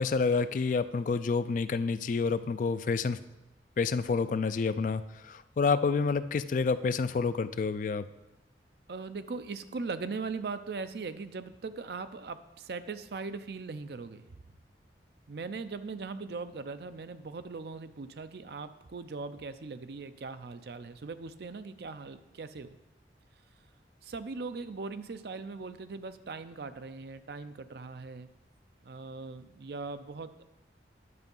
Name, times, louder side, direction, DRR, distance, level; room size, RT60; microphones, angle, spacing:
voice 1, 0.0-3.2 3.8-8.1, left 4 dB, 45° left, 13 dB, 0.3 m, -28 dB
voice 2, 8.9-14.3 15.3-22.8 24.0-28.3 28.8-30.4, right 4 dB, 60° right, 11 dB, 0.5 m, -40 dB
9.6 x 5.6 x 5.4 m, 1.0 s
head